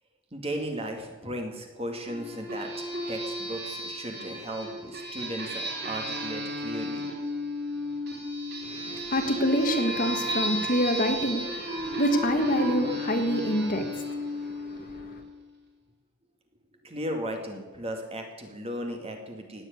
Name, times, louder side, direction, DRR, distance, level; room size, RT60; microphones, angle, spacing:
voice 1, 0.3-2.7 3.1-7.1 16.8-19.6, right 1 dB, 25° right, 2.3 m, -36 dB
sound 1, 2.1-15.3, equal, 45° right, 3.6 m, -34 dB
voice 2, 8.6-15.2, equal, 35° left, 1.6 m, -27 dB
17.5 x 7.8 x 9.6 m
head